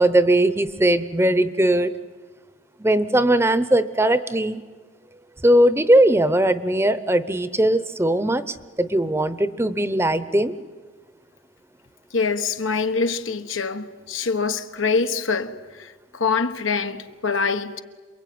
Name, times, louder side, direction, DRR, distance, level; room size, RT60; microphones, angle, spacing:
voice 1, 0.0-1.9 2.8-4.6 5.4-10.6, right 1 dB, 15° right, 0.8 m, -19 dB
voice 2, 12.1-17.8, left 4 dB, 85° left, 1.4 m, -25 dB
28.0 x 22.0 x 9.5 m
head